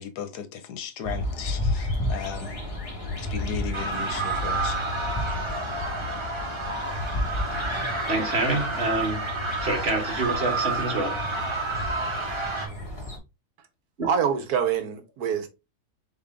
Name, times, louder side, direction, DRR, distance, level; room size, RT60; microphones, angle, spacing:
voice 1, 0.0-2.6 3.2-4.8, left 7 dB, 75° left, 1.3 m, -36 dB
sound 1, 1.0-13.2, left 1 dB, 25° left, 1.1 m, -32 dB
sound 2, 3.7-12.7, right 3 dB, 20° right, 0.9 m, -30 dB
voice 2, 8.1-9.2 9.6-11.2, right 2 dB, 40° right, 1.5 m, -26 dB
voice 3, 14.0-15.5, right 7 dB, 70° right, 1.2 m, -25 dB
3.9 x 3.5 x 3.6 m
omnidirectional pair, 1.7 m